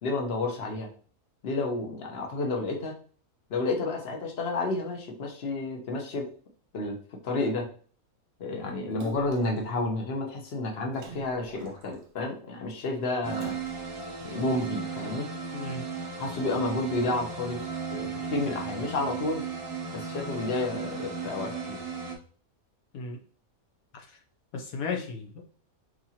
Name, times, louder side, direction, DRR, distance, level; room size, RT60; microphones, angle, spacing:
voice 1, 0.0-0.9 1.4-3.0 3.5-6.3 6.7-7.0 7.2-7.7 8.4-13.5 14.2-15.3 16.2-17.6 17.9-19.4 19.9-21.8, left 2 dB, 50° left, 1 dB, 1.1 m, -30 dB
Splash splatter, 9.0-9.6 10.9-12.2 13.3-14.1 14.7-14.8, right 2 dB, 70° right, 1.2 m, -46 dB
sound 1, 13.2-22.2, right 5 dB, 35° right, 0.6 m, -36 dB
voice 2, 15.5-15.9 22.9-23.2 23.9-24.0 24.5-25.4, left 4 dB, 75° left, 2 dB, 1.1 m, -34 dB
4.9 x 2.7 x 2.8 m, 0.42 s
omnidirectional pair, 1.5 m